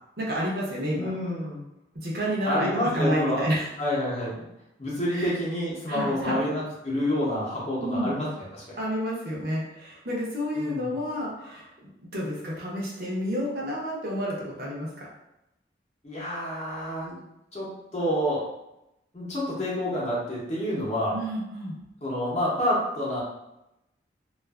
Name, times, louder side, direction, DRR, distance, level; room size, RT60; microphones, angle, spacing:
voice 1, 0.2-1.1 1.9-3.7 5.1-5.3 5.9-6.4 7.8-8.1 8.8-11.7 12.0-15.1 21.1-21.8, equal, 55° right, -5 dB, 0.7 m, -30 dB
voice 2, 0.9-1.6 2.4-3.4 3.8-4.5 4.8-8.6 10.6-10.9 16.0-17.2 17.5-18.4 19.1-21.2 22.0-23.2, left 1 dB, 35° left, -6 dB, 0.8 m, -28 dB
2.5 x 2.4 x 2.3 m, 0.88 s
head